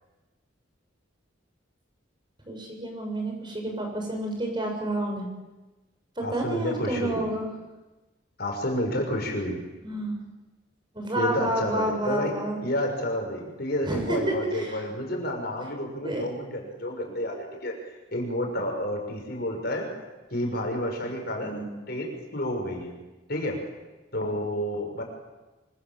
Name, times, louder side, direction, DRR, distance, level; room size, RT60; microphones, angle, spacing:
voice 1, 2.4-5.3 6.2-7.5 9.8-10.2 10.9-12.6 13.8-14.9 16.0-16.3 21.4-21.8, right 1 dB, 25° right, 2 dB, 6.8 m, -30 dB
voice 2, 6.2-7.3 8.4-9.6 11.1-12.3 12.6-17.8 18.1-19.9 20.3-23.0 23.3-23.6 24.1-25.0, left 1 dB, 55° left, 2 dB, 6.2 m, -30 dB
26.0 x 25.5 x 7.7 m, 1.1 s
head